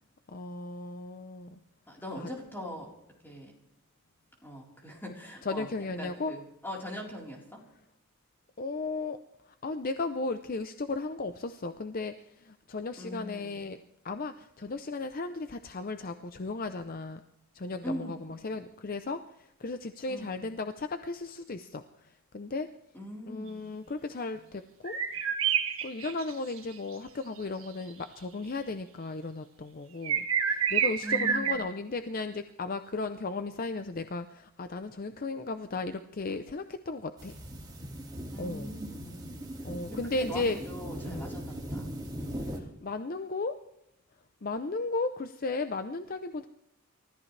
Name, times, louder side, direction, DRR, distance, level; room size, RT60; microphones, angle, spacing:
voice 1, 0.3-1.6 2.2-2.3 5.4-6.3 8.6-9.2 9.5-13.8 14.0-17.2 17.5-22.1 22.3-22.7 23.3-25.0 25.8-37.4 38.4-38.8 39.6-40.6 41.0-41.2 42.4-43.5 44.4-46.5, left 3 dB, 40° left, 9 dB, 0.6 m, -35 dB
voice 2, 1.9-2.9 3.2-3.5 4.4-5.7 6.0-7.6 13.0-13.6 17.8-18.5 20.1-20.5 22.9-23.7 31.0-31.6 38.3-39.4 39.9-41.9 42.2-42.6, equal, 10° left, -2 dB, 4.0 m, -41 dB
sound 1, 24.9-26.6 27.9-28.0 30.0-31.5, right 7 dB, 70° right, 1.7 m, -28 dB
sound 2, 37.2-42.6, equal, 20° right, 2.3 m, -39 dB
29.0 x 14.0 x 3.3 m, 0.81 s
head